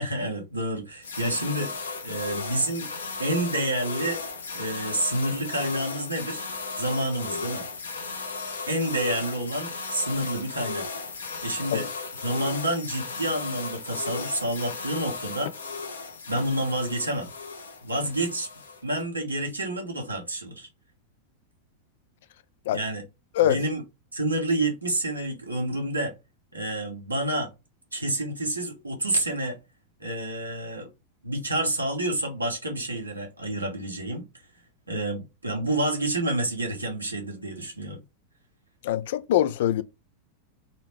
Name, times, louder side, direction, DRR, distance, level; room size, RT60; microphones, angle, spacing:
voice 1, 0.0-1.7 2.0-2.9 3.2-4.2 4.5-6.5 6.8-7.7 8.7-10.8 11.4-11.9 12.2-15.5 16.3-17.3 17.8-18.5 18.8-20.7 22.7-23.0 23.4-23.8 24.1-26.1 26.5-27.5 27.9-29.6 30.0-30.9 31.2-34.3 34.9-38.0, right 1 dB, 80° right, 1.6 m, -28 dB
sound 1, 1.0-19.0, left 4 dB, 70° left, 1.0 m, -35 dB
voice 2, 38.8-39.8, left 12 dB, 55° left, 0.4 m, -23 dB
4.0 x 3.1 x 3.3 m
figure-of-eight pair, 90°, 0 cm